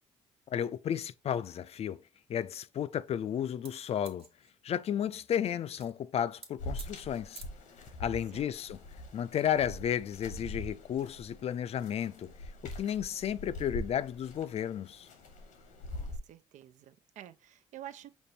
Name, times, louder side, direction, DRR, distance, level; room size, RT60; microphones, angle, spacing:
voice 1, 0.5-2.0 2.3-4.3 4.6-7.4 8.0-8.8 9.1-12.3 12.6-15.1, left 9 dB, 55° left, 0.4 m, -33 dB
sound 1, 3.6-5.0 5.8-5.9 6.3-6.5 6.8-6.9 7.4-7.5, right 4 dB, 50° right, 1.1 m, -47 dB
sound 2, 6.6-16.2, left 1 dB, 85° left, 1.0 m, -44 dB
voice 2, 15.9-18.1, right 12 dB, 70° right, 0.4 m, -49 dB
5.2 x 2.0 x 4.1 m
supercardioid pair, 70°, 13 cm